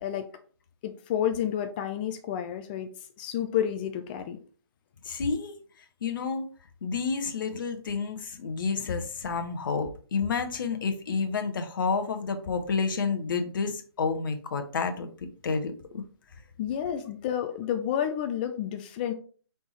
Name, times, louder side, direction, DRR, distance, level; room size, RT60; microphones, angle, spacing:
voice 1, 0.8-2.9 3.2-4.4 16.6-19.1, left 10 dB, 20° left, 7 dB, 0.4 m, -30 dB
voice 2, 5.0-5.5 6.0-6.5 6.8-16.0, left 5 dB, 50° left, 7 dB, 0.8 m, -30 dB
4.2 x 3.5 x 3.1 m, 0.41 s
figure-of-eight pair, 140°, 14 cm